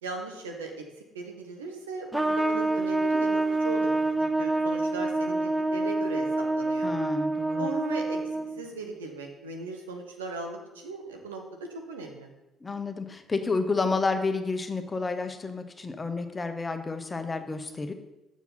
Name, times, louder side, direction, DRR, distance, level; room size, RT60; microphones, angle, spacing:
voice 1, 0.0-0.8 1.1-4.1 4.4-6.9 7.6-8.2 8.6-12.3, right 3 dB, 85° right, 2 dB, 0.9 m, -38 dB
Trumpet, 2.1-8.7, right 2 dB, 10° right, 0.6 m, -27 dB
voice 2, 6.8-7.7 12.6-17.9, left 3 dB, 30° left, 7 dB, 0.9 m, -30 dB
7.0 x 6.1 x 4.2 m, 0.99 s
hypercardioid pair, 50°, 0 cm